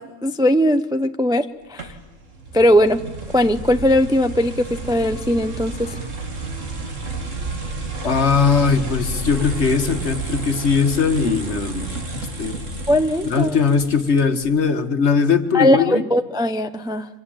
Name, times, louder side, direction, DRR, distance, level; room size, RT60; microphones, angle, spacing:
voice 1, 0.0-1.9 2.5-3.0 3.3-6.0 12.9-13.6 15.5-17.1, equal, 5° right, 9 dB, 0.5 m, -19 dB
sound 1, 1.8-14.5, right 2 dB, 70° right, 2.7 m, -31 dB
voice 2, 8.0-12.6 13.2-16.0, left 5 dB, 55° left, 9 dB, 1.7 m, -20 dB
25.0 x 23.5 x 9.0 m, 1.2 s
omnidirectional pair, 1.4 m